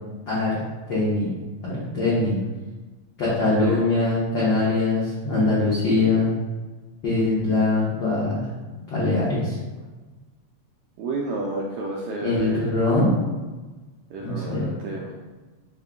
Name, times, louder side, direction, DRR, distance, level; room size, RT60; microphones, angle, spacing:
voice 1, 0.3-0.6 0.9-1.3 1.6-2.3 3.2-6.3 7.0-8.4 8.7-9.6 12.2-13.1 14.2-14.7, left 2 dB, 75° left, -9 dB, 1.0 m, -22 dB
voice 2, 3.6-3.9 11.0-12.7 14.1-15.2, right 2 dB, 80° right, -2 dB, 1.6 m, -31 dB
6.3 x 2.2 x 3.5 m, 1.3 s
omnidirectional pair, 3.7 m